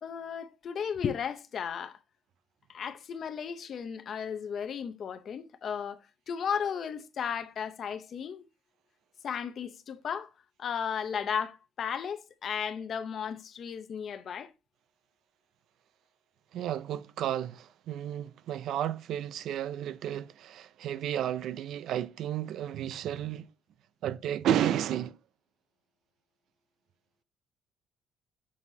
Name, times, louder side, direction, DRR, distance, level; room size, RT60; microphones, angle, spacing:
voice 1, 0.0-2.0 2.7-6.0 6.3-8.5 9.2-10.3 10.6-14.5, left 7 dB, 40° left, 0.7 m, -35 dB
voice 2, 16.5-23.5 24.0-25.2, right 11 dB, 60° right, 0.4 m, -32 dB
7.2 x 6.2 x 2.7 m
cardioid pair, 170°, 0 cm